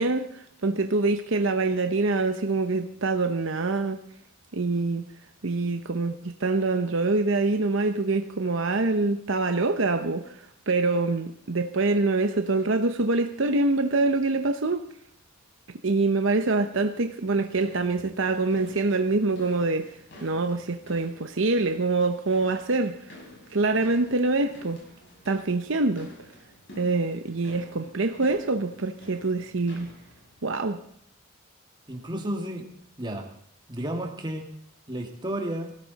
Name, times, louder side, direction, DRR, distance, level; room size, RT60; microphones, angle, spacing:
voice 1, 0.0-4.0 4.5-5.1 5.4-10.4 10.7-14.8 15.8-19.9 20.2-23.1 23.5-24.8 25.3-26.1 26.8-29.9 30.4-30.8, right 3 dB, 65° right, 7 dB, 0.9 m, -25 dB
sound 1, 17.1-30.5, left 1 dB, 60° left, 7.1 m, -50 dB
voice 2, 31.9-32.7 33.0-33.3 33.7-34.5 34.9-35.8, right 1 dB, 20° right, 2 dB, 2.1 m, -32 dB
19.0 x 16.0 x 4.1 m, 0.67 s
head